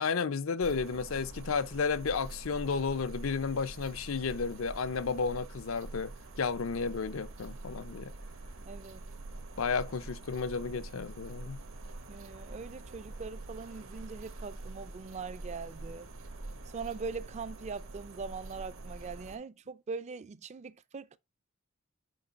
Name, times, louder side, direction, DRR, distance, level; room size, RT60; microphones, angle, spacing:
voice 1, 0.0-6.1 6.4-8.1 9.6-11.6, left 5 dB, 80° left, 0.6 m, -32 dB
sound 1, 0.6-19.4, right 2 dB, 75° right, 1.0 m, -45 dB
voice 2, 8.6-9.0 12.1-16.1 16.7-21.2, right 4 dB, 35° right, 0.4 m, -41 dB
6.5 x 4.5 x 4.1 m
head